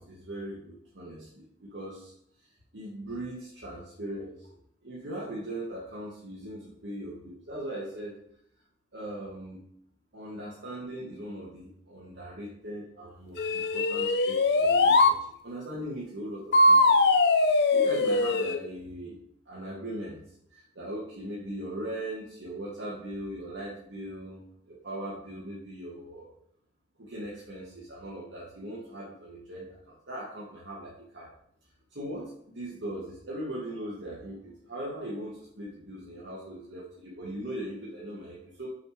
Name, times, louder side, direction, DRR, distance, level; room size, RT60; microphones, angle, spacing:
voice 1, 0.0-2.1 2.7-4.5 4.8-8.1 8.9-9.6 10.1-15.2 15.4-17.1 17.4-19.1 19.5-20.2 20.5-26.3 27.0-31.3 31.9-38.7, right 1 dB, 75° right, -6 dB, 1.3 m, -39 dB
sound 1, 13.4-15.2 16.5-18.6, left 2 dB, 60° left, 0.5 m, -21 dB
6.2 x 3.2 x 4.9 m, 0.67 s
head